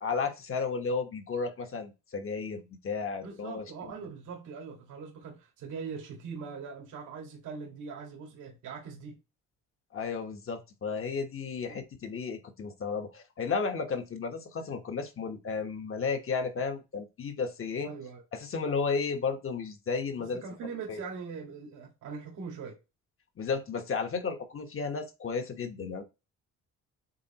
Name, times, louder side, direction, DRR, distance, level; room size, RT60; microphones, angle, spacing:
voice 1, 0.0-4.1 9.9-17.9 18.3-20.4 20.9-21.0 23.4-26.0, left 5 dB, 45° left, 1.3 m, -33 dB
voice 2, 3.2-9.2 11.7-11.8 17.8-18.2 20.2-22.8, right 5 dB, 85° right, 2.0 m, -41 dB
8.2 x 3.9 x 3.0 m
cardioid pair, 90°, 30 cm